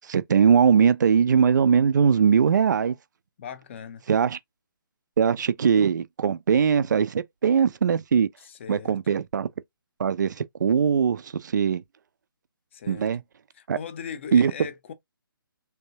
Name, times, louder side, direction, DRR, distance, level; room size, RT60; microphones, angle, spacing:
voice 1, 0.0-3.0 4.1-4.4 5.2-8.3 8.7-9.5 10.0-11.8 12.9-13.2 13.7-13.8 14.3-14.5, right 7 dB, 55° right, 0.4 m, -21 dB
voice 2, 3.4-4.0 8.4-9.0 12.7-13.1 13.5-14.9, left 7 dB, 30° left, 0.6 m, -39 dB
3.3 x 2.7 x 2.8 m
figure-of-eight pair, 140°, 12 cm